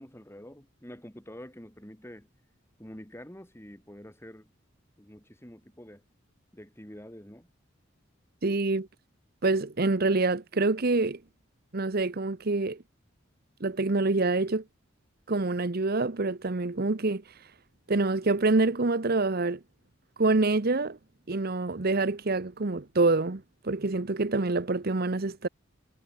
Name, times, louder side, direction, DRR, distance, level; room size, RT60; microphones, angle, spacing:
voice 1, 0.0-2.3 2.8-4.5 5.0-6.0 6.5-7.5, equal, 15° left, 3.6 m, -47 dB
voice 2, 8.4-8.9 9.4-11.2 11.7-12.8 13.6-14.6 15.3-17.2 17.9-19.6 20.2-21.0 21.3-25.5, right 3 dB, 50° right, 1.0 m, -26 dB
head